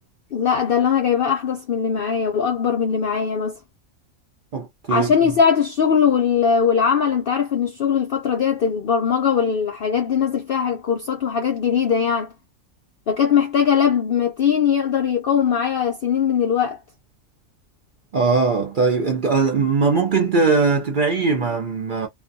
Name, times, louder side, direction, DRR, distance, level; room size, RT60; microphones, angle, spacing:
voice 1, 0.3-3.6 4.9-12.3 13.1-16.8, left 7 dB, 70° left, 0.5 m, -20 dB
voice 2, 4.5-5.1 18.1-22.1, right 4 dB, 55° right, 0.6 m, -20 dB
2.4 x 2.2 x 2.6 m
omnidirectional pair, 1.4 m